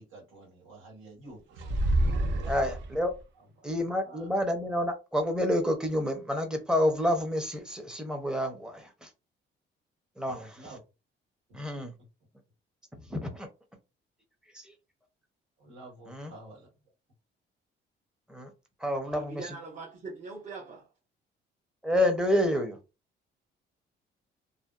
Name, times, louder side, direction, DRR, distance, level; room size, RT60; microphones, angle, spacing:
voice 1, 0.0-1.6 2.5-2.8 3.6-3.7 4.0-4.3 10.2-10.8 11.7-11.8 15.6-16.7, right 2 dB, 85° right, 1.3 m, -49 dB
sound 1, 1.6-3.2, right 1 dB, 65° right, 0.6 m, -27 dB
voice 2, 2.4-3.1 3.6-9.1 10.2-10.6 11.5-11.9 13.1-13.5 14.5-14.6 16.1-16.3 18.3-18.5 18.8-19.5 21.8-22.8, left 1 dB, 5° right, 0.6 m, -29 dB
voice 3, 19.1-20.9, right 3 dB, 45° right, 0.8 m, -41 dB
2.6 x 2.0 x 2.3 m
cardioid pair, 115°, 20 cm